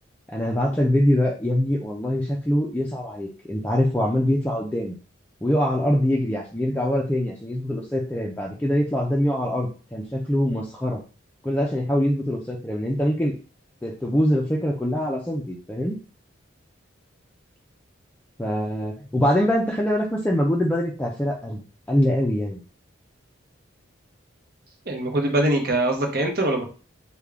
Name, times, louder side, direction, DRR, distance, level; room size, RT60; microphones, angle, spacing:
voice 1, 0.3-4.9 5.4-11.0 11.4-13.3 13.8-15.9 18.4-22.6, equal, 10° left, -2 dB, 0.4 m, -23 dB
voice 2, 24.9-26.6, right 1 dB, 50° right, 2 dB, 0.8 m, -23 dB
3.5 x 2.2 x 3.5 m, 0.35 s
head